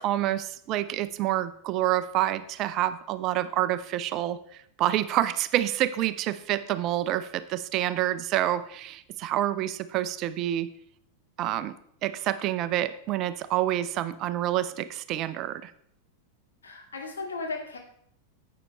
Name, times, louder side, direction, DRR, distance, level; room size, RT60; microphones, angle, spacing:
voice 1, 0.0-4.4 4.8-10.7 11.4-11.7 12.0-15.7, right 13 dB, 35° right, 14 dB, 0.5 m, -28 dB
voice 2, 16.6-17.8, left 3 dB, 70° left, 1 dB, 2.2 m, -35 dB
11.0 x 8.5 x 3.3 m, 0.67 s
figure-of-eight pair, 90°, 0 cm